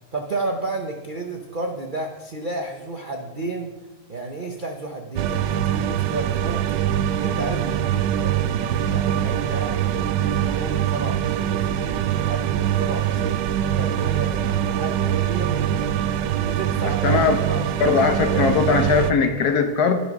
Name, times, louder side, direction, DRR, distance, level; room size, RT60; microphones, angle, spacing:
voice 1, 0.1-3.7 4.1-15.9 16.4-18.6, right 2 dB, 50° right, 2 dB, 0.6 m, -32 dB
sound 1, 5.2-19.1, right 10 dB, 90° right, 1.3 m, -23 dB
voice 2, 17.0-17.4 17.8-20.0, left 5 dB, 65° left, 6 dB, 1.4 m, -19 dB
11.0 x 5.7 x 5.2 m, 1.1 s
omnidirectional pair, 1.9 m